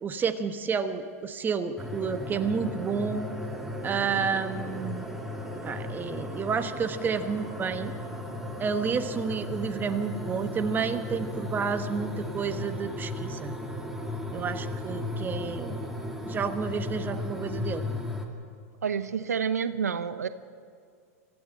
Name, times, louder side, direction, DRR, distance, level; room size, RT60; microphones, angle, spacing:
voice 1, 0.0-3.3 3.8-5.1 5.6-7.9 8.6-13.6 14.3-15.8 16.2-17.8, right 6 dB, 25° right, 9 dB, 1.2 m, -30 dB
sound 1, 1.8-18.3, left 1 dB, 5° right, 2.5 m, -35 dB
voice 2, 18.8-20.3, right 7 dB, 90° right, 13 dB, 0.7 m, -29 dB
24.5 x 14.5 x 7.7 m, 2.2 s
hypercardioid pair, 105°, 8 cm